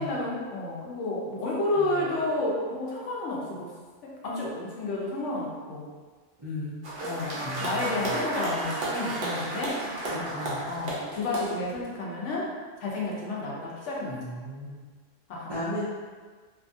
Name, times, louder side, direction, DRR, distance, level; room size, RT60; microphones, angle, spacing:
voice 1, 0.0-3.7 4.0-5.9 7.0-9.9 10.2-12.5 12.8-14.2 15.3-15.5, left 2 dB, 80° left, -4 dB, 1.0 m, -31 dB
voice 2, 6.4-6.8 7.4-8.1 10.1-10.6 14.1-14.8 15.5-15.8, left 1 dB, 45° right, -11 dB, 0.3 m, -36 dB
sound 1, 6.8-11.8, right 1 dB, 60° right, 0.8 m, -33 dB
2.7 x 2.3 x 2.5 m, 1.5 s
omnidirectional pair, 1.2 m